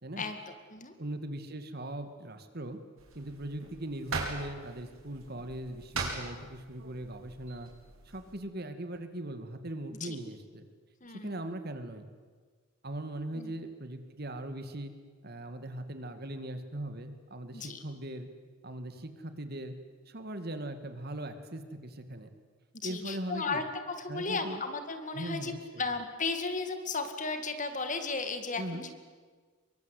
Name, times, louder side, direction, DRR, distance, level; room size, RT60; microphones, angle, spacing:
voice 1, 0.2-0.9 10.0-10.2 11.0-11.4 13.3-13.5 17.5-17.8 22.8-23.6 24.0-25.5 25.8-28.9, left 4 dB, 35° left, 8 dB, 2.3 m, -35 dB
voice 2, 1.0-2.8 3.1-7.7 8.1-10.7 11.1-12.1 12.8-14.9 15.2-18.3 18.6-19.7 20.1-22.3 22.8-23.6 24.1-24.6 25.1-25.9 28.6-28.9, right 1 dB, 50° right, 8 dB, 2.2 m, -40 dB
sound 1, 3.0-8.3, right 3 dB, 80° right, 5.1 m, -41 dB
24.5 x 23.0 x 8.4 m, 1.5 s
head